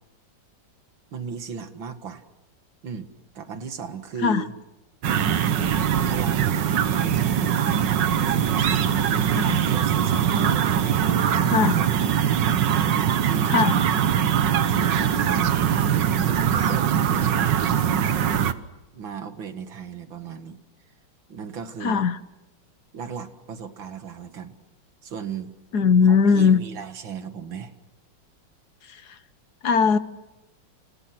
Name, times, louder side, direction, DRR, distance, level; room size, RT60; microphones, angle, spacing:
voice 1, 1.1-2.2 2.8-4.5 6.1-7.7 8.2-9.3 9.7-12.4 12.8-13.7 14.7-15.5 16.3-18.1 18.9-20.6 21.3-22.0 22.9-24.6 25.0-25.5 26.1-27.7, right 6 dB, 90° right, 9 dB, 2.6 m, -36 dB
sound 1, 5.0-18.5, right 9 dB, 70° right, 1.8 m, -22 dB
voice 2, 13.4-13.8 21.8-22.2 25.7-26.6 28.9-29.2 29.6-30.0, left 6 dB, 60° left, 13 dB, 1.6 m, -19 dB
30.0 x 28.5 x 6.1 m, 1.0 s
omnidirectional pair, 2.1 m